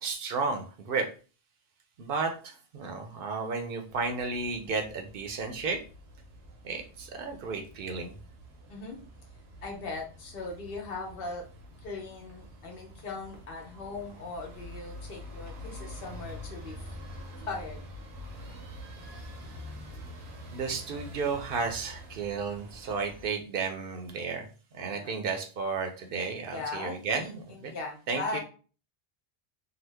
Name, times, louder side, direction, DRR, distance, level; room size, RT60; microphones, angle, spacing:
voice 1, 0.0-1.1 2.0-5.8 6.6-8.2 20.5-24.5 24.7-27.7 28.1-28.4, right 4 dB, 65° right, 4 dB, 0.7 m, -33 dB
sound 1, 3.9-23.3, left 1 dB, 90° right, 1.0 m, -46 dB
voice 2, 9.6-11.4 11.8-16.9 17.5-17.8 24.9-25.2 26.5-28.4, left 3 dB, 65° left, 1 dB, 1.0 m, -39 dB
2.8 x 2.0 x 3.3 m, 0.37 s
omnidirectional pair, 1.0 m